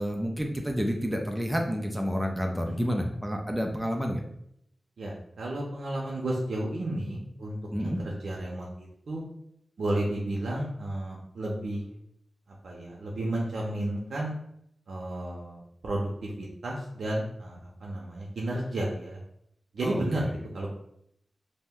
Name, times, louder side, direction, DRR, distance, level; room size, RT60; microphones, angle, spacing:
voice 1, 0.0-4.2 7.7-8.0 19.8-20.3, equal, 5° right, 2 dB, 0.4 m, -29 dB
voice 2, 5.0-7.6 7.8-9.2 9.8-11.8 12.6-14.3 14.9-19.2 19.7-20.3 20.5-20.7, right 1 dB, 80° right, -3 dB, 0.5 m, -32 dB
2.5 x 2.1 x 3.5 m, 0.72 s
wide cardioid pair, 110°, 0 cm